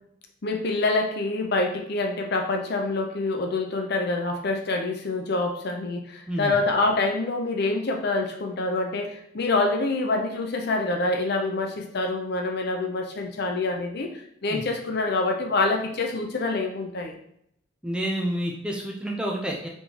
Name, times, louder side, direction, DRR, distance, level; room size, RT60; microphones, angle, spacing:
voice 1, 0.4-14.1 14.4-17.1, left 2 dB, 55° left, 2 dB, 0.6 m, -26 dB
voice 2, 17.8-19.7, right 1 dB, 5° right, -1 dB, 0.5 m, -29 dB
4.2 x 3.5 x 2.9 m, 0.72 s
head